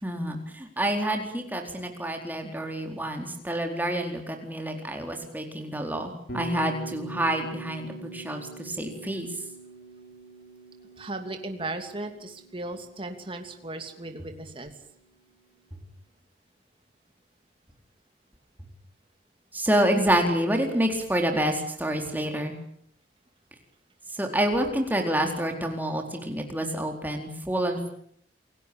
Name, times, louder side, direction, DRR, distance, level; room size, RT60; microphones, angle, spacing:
voice 1, 0.0-9.3 19.5-22.6 24.2-27.9, right 1 dB, 10° right, 3 dB, 4.3 m, -28 dB
Bass guitar, 6.3-14.4, right 3 dB, 60° left, 6.8 m, -44 dB
voice 2, 11.0-14.7, right 2 dB, 30° right, 6 dB, 2.8 m, -36 dB
28.5 x 18.0 x 8.9 m, 0.67 s
head